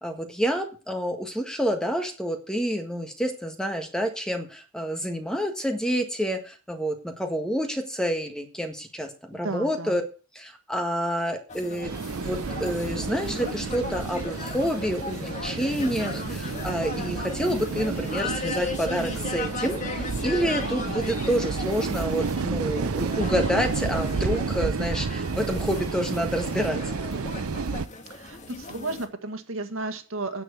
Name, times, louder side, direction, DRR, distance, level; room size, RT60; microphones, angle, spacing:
voice 1, 0.0-10.0 10.3-26.8, equal, 5° left, 4 dB, 1.6 m, -28 dB
voice 2, 9.4-10.0 28.1-30.4, right 2 dB, 70° right, 8 dB, 1.8 m, -33 dB
sound 1, 11.5-29.1, left 3 dB, 35° left, 1.6 m, -37 dB
sound 2, 11.8-27.9, right 4 dB, 90° right, 0.7 m, -30 dB
10.0 x 7.5 x 8.2 m, 0.36 s
head